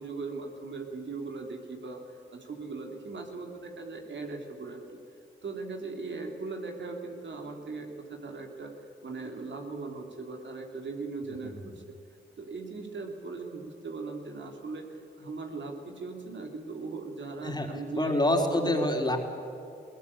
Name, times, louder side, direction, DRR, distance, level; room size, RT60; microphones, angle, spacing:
voice 1, 0.0-4.8 5.4-8.7 9.0-11.9 12.4-18.9, right 3 dB, 65° right, 3 dB, 3.1 m, -39 dB
voice 2, 17.9-19.2, left 1 dB, 20° left, 2 dB, 3.8 m, -27 dB
20.5 x 18.0 x 8.6 m, 2.6 s
cardioid pair, 55°, 20 cm